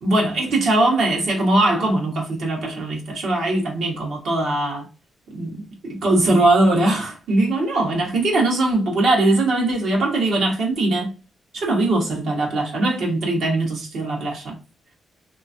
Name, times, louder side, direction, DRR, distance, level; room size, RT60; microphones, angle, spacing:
voice 1, 0.0-4.9 5.3-11.1 11.5-14.5, right 2 dB, 80° right, 1.4 m, -21 dB
2.9 x 2.5 x 2.7 m
cardioid pair, 65°, 0 cm